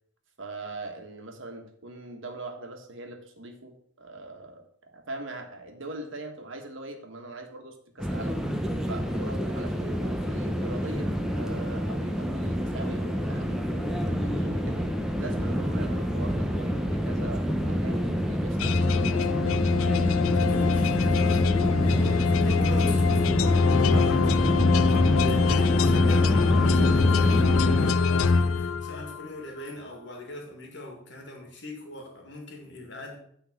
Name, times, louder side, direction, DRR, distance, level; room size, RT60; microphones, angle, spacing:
voice 1, 0.4-8.4 8.9-14.9 15.2-19.4, right 2 dB, 70° right, 4 dB, 1.5 m, -41 dB
sound 1, 8.0-27.9, equal, 5° right, 0.7 m, -28 dB
sound 2, 18.6-29.3, left 4 dB, 80° left, 0.4 m, -23 dB
voice 2, 20.3-21.5 21.8-33.2, left 2 dB, 55° left, 2 dB, 2.2 m, -42 dB
9.4 x 3.9 x 7.1 m, 0.67 s
head